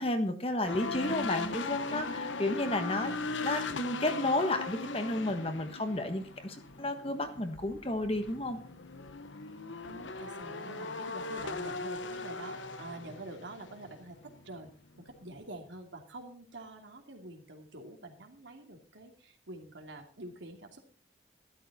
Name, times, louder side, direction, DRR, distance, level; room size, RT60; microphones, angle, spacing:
voice 1, 0.0-3.1 3.4-8.6, left 1 dB, 30° left, 7 dB, 1.3 m, -32 dB
sound 1, 0.7-14.7 15.0-15.2, left 3 dB, 90° left, 1.1 m, -39 dB
voice 2, 2.6-3.3 9.8-14.7 15.0-20.8, right 1 dB, 80° right, 3 dB, 2.7 m, -47 dB
13.0 x 12.5 x 4.2 m, 0.42 s
head